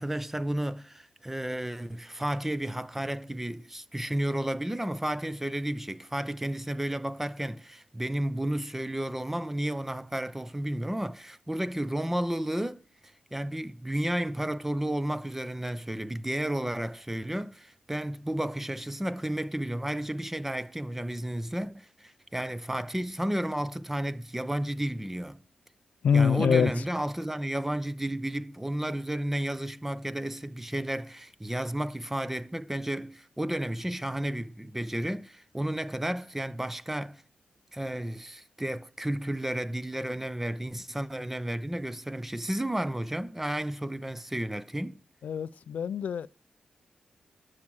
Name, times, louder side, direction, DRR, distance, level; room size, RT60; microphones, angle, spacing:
voice 1, 0.0-12.8 13.3-25.4 26.1-37.2 37.7-45.0, right 1 dB, 10° right, 0.7 m, -32 dB
voice 2, 26.0-26.7 45.2-46.3, left 7 dB, 75° left, 0.4 m, -24 dB
10.5 x 4.9 x 7.3 m
cardioid pair, 60°, 3 cm